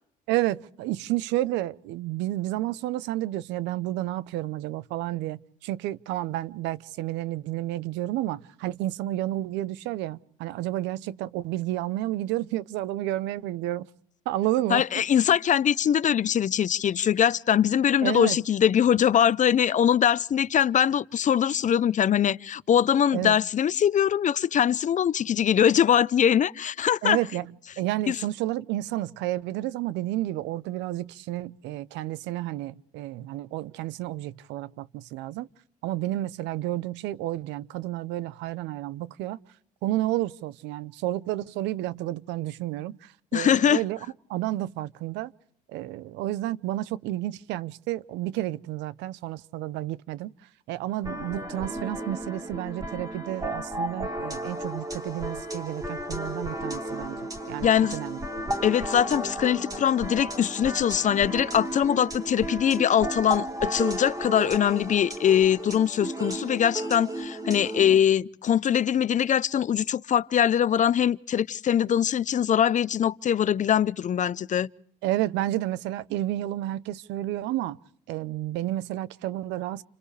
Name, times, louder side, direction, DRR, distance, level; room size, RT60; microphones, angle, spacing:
voice 1, 0.3-13.9 14.3-14.8 18.0-18.4 23.1-23.4 27.0-35.5 35.8-39.4 39.8-44.0 44.3-45.3 45.7-50.3 50.7-57.2 57.5-58.2 75.0-77.8 78.1-79.8, right 15 dB, 80° right, 0.8 m, -31 dB
voice 2, 14.7-27.2 28.1-28.2 43.3-43.8 57.6-58.0 58.6-74.7, left 9 dB, 45° left, 0.7 m, -22 dB
sound 1, 51.0-68.0, right 1 dB, 20° right, 3.8 m, -34 dB
30.0 x 26.0 x 3.4 m
supercardioid pair, 75°, 18 cm